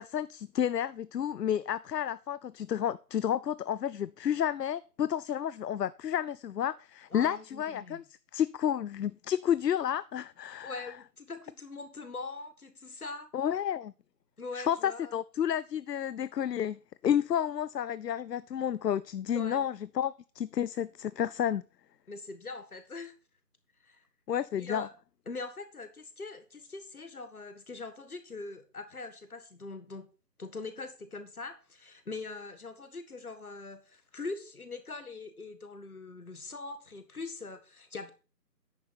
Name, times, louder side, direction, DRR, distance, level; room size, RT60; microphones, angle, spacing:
voice 1, 0.0-8.0 8.3-10.9 13.3-13.9 14.6-21.6 24.3-24.9, left 9 dB, 75° left, 0.6 m, -31 dB
voice 2, 7.1-8.0 10.6-13.3 14.4-15.2 19.3-19.6 22.1-23.2 23.8-24.0 24.6-24.9 25.3-30.1 30.4-38.1, left 3 dB, 60° left, 1.8 m, -42 dB
10.0 x 6.4 x 4.2 m
figure-of-eight pair, 175°, 49 cm